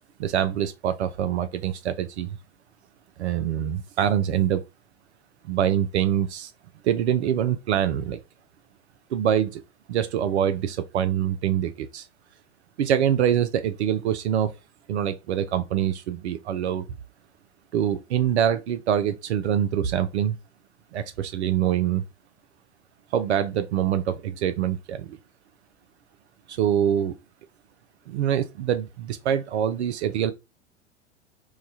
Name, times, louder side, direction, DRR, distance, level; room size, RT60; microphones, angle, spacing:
voice 1, 0.2-2.4 3.2-4.6 5.4-6.5 6.8-8.2 9.1-9.6 9.9-12.1 12.8-14.5 14.9-16.9 17.7-20.4 20.9-22.0 23.1-25.2 26.5-27.2 28.1-30.3, right 10 dB, 65° right, 0.5 m, -24 dB
4.6 x 2.2 x 2.7 m
figure-of-eight pair, 90°, 36 cm